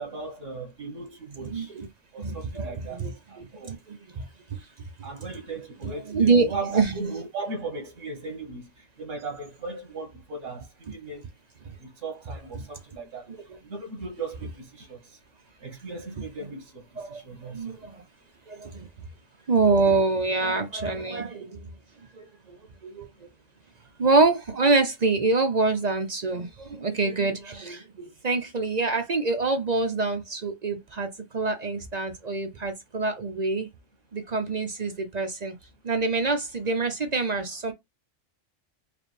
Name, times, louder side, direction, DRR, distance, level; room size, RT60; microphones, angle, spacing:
voice 1, 0.0-1.7 2.1-3.0 3.3-3.7 5.0-8.6 9.0-11.3 11.8-13.3 13.6-15.0 15.6-16.8 17.1-17.6, right 3 dB, 85° right, 1.5 m, -37 dB
voice 2, 1.4-1.9 2.2-4.6 5.8-7.0 11.7-11.8 12.6-12.7 17.0-17.2 17.5-18.0 18.5-18.9 19.5-21.7 22.1-22.6 22.8-23.3 24.0-33.7 34.1-35.5 35.8-37.7, right 3 dB, 45° right, 0.7 m, -26 dB
5.0 x 2.2 x 3.3 m
omnidirectional pair, 1.3 m